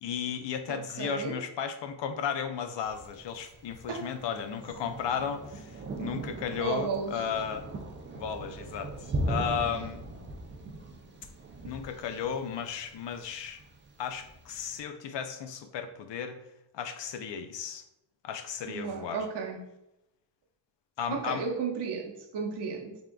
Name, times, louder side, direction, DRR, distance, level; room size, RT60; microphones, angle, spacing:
voice 1, 0.0-7.6 8.1-8.9 9.2-10.0 11.6-13.6 14.0-16.4 16.7-17.8 18.2-19.2 21.0-21.4, left 7 dB, 75° left, 0.5 m, -34 dB
voice 2, 0.7-1.4 3.9-4.1 6.6-7.2 18.7-19.6 21.1-23.0, right 5 dB, 65° right, 0.8 m, -34 dB
Thunder, 2.8-14.8, right 1 dB, 30° right, 0.3 m, -39 dB
3.6 x 3.5 x 2.2 m
wide cardioid pair, 140°, 43 cm